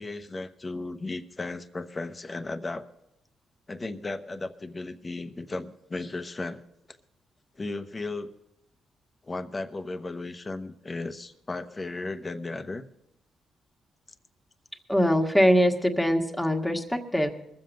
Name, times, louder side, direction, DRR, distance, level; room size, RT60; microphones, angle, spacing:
voice 1, 0.0-2.9 3.7-6.6 7.6-8.3 9.2-12.9, left 2 dB, 25° left, 9 dB, 0.9 m, -35 dB
voice 2, 14.9-17.3, equal, 5° left, 4 dB, 1.5 m, -23 dB
21.5 x 7.6 x 5.3 m, 0.86 s
cardioid pair, 90°, 0 cm